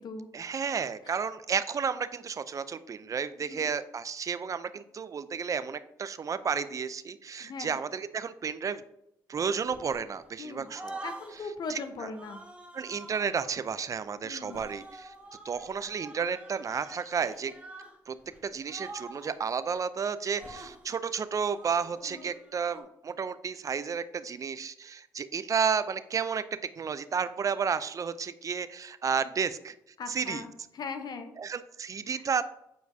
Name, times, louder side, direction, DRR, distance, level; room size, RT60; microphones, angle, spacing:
voice 1, 0.3-8.8 9.3-11.1 11.7-12.1 12.7-15.1 15.4-17.5 18.1-18.2 18.4-26.4 26.8-29.7 30.1-30.4 31.4-32.4, right 6 dB, 45° right, 13 dB, 0.5 m, -32 dB
voice 2, 7.4-7.8 10.4-10.7 11.0-12.4 14.2-14.6 22.1-22.3 30.0-31.3 32.1-32.2, left 4 dB, 55° left, 7 dB, 0.8 m, -40 dB
sound 1, 9.6-10.3 10.6-11.5 12.1-13.6 14.4-18.0 18.2-18.4 18.6-19.4 20.2-20.8 21.4-22.8, right 2 dB, 15° right, 1.5 m, -46 dB
8.1 x 4.6 x 2.7 m, 0.81 s
supercardioid pair, 60°, 8 cm